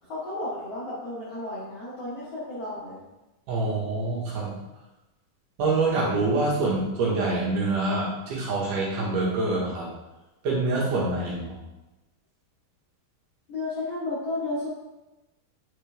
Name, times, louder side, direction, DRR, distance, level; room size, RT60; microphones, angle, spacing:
voice 1, 0.0-3.0 13.5-14.7, left 2 dB, 50° left, -10 dB, 2.3 m, -33 dB
voice 2, 3.5-4.5 5.6-9.9 10.4-11.5, right 2 dB, 65° right, -5 dB, 2.8 m, -25 dB
9.3 x 4.3 x 3.3 m, 1.0 s
omnidirectional pair, 4.2 m